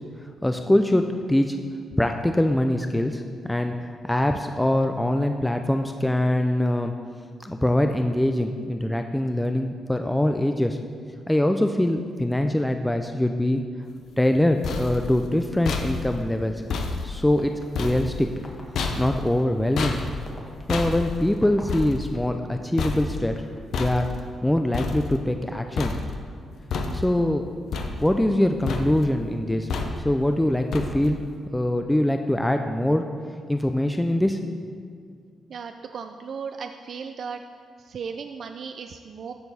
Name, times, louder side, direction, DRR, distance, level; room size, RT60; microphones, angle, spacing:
voice 1, 0.4-1.6 2.0-3.2 3.5-6.9 7.4-10.8 11.3-13.6 14.2-16.6 17.0-18.3 19.0-20.0 20.7-23.4 23.8-24.1 24.4-25.9 26.9-27.5 28.0-29.7 30.0-31.2 31.5-33.1 33.5-34.4, left 1 dB, 10° left, 5 dB, 0.4 m, -23 dB
sound 1, 14.3-25.5 25.8-26.4 26.7-27.4 27.7-28.4 28.7-29.2 29.7-30.2 30.7-31.3, left 4 dB, 75° left, 0.7 m, -31 dB
sound 2, 15.8-15.9 16.7-16.8 17.4-17.6 18.4-18.6 19.4-19.5 20.1-22.2 22.8-23.6, left 2 dB, 30° left, 1.5 m, -45 dB
voice 2, 35.5-37.4 37.8-39.3, right 6 dB, 65° right, 7 dB, 0.3 m, -36 dB
13.5 x 4.5 x 4.1 m, 2.1 s
cardioid pair, 75°, 0 cm